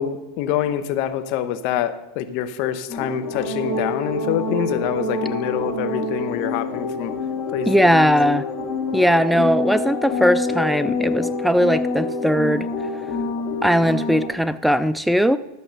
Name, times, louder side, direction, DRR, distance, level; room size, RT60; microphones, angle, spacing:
voice 1, 0.0-7.1 7.5-8.1, left 10 dB, 55° left, 10 dB, 1.0 m, -26 dB
sound 1, 2.9-14.3, left 3 dB, 40° left, 2.8 m, -26 dB
voice 2, 7.7-8.4 8.9-12.7 13.6-15.4, equal, ahead, 14 dB, 0.4 m, -19 dB
12.5 x 7.1 x 5.4 m, 0.97 s
hypercardioid pair, 105°, 0 cm